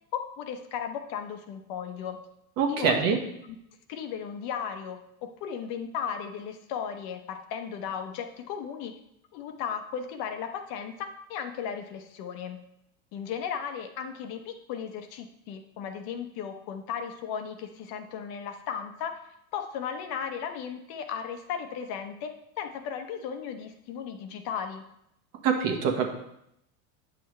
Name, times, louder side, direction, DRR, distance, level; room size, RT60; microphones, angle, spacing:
voice 1, 0.1-2.2 2.7-3.0 3.5-3.6 3.9-8.9 9.3-12.6 13.1-19.2 19.5-24.8, left 7 dB, 60° left, 7 dB, 1.0 m, -36 dB
voice 2, 2.6-3.2 25.4-26.1, right 6 dB, 55° right, 4 dB, 1.4 m, -24 dB
8.5 x 5.9 x 3.2 m, 0.78 s
supercardioid pair, 110°, 42 cm